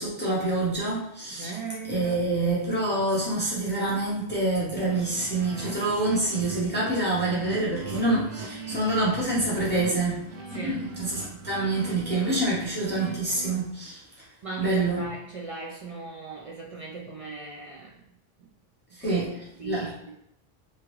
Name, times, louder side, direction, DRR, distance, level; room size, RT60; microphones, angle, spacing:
voice 1, 0.0-1.5 1.9-10.2 10.5-14.0 14.6-15.1 18.9-19.3 19.6-19.9, right 2 dB, 10° left, -7 dB, 0.7 m, -26 dB
voice 2, 1.4-2.2 10.5-10.9 14.4-18.0 19.0-19.2 19.6-20.1, right 4 dB, 55° right, -4 dB, 0.4 m, -38 dB
sound 1, 4.8-13.5, right 4 dB, 90° right, 0.8 m, -39 dB
2.9 x 2.4 x 3.0 m, 0.77 s
omnidirectional pair, 1.1 m